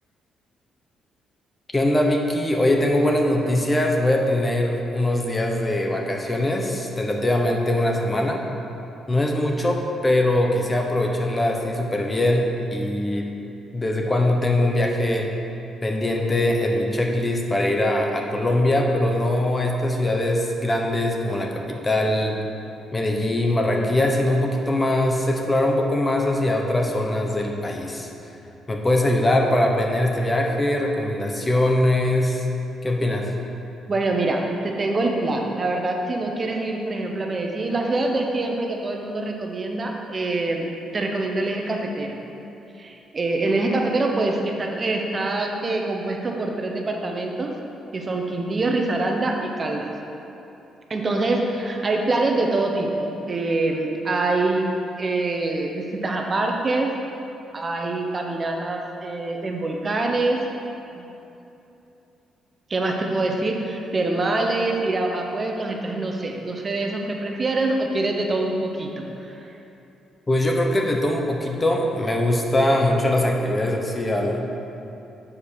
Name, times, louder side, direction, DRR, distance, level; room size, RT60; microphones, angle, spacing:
voice 1, 1.7-8.4 9.1-13.3 13.7-15.3 15.8-22.4 22.9-28.1 28.7-32.4 32.8-33.3 70.3-74.5, left 1 dB, 20° left, 1 dB, 1.0 m, -22 dB
voice 2, 33.9-42.2 42.8-47.5 47.9-49.9 50.9-54.7 55.0-56.9 57.5-60.4 62.7-69.5, right 2 dB, 35° right, 1 dB, 0.9 m, -25 dB
7.3 x 4.7 x 6.7 m, 2.9 s
cardioid pair, 90°, 0 cm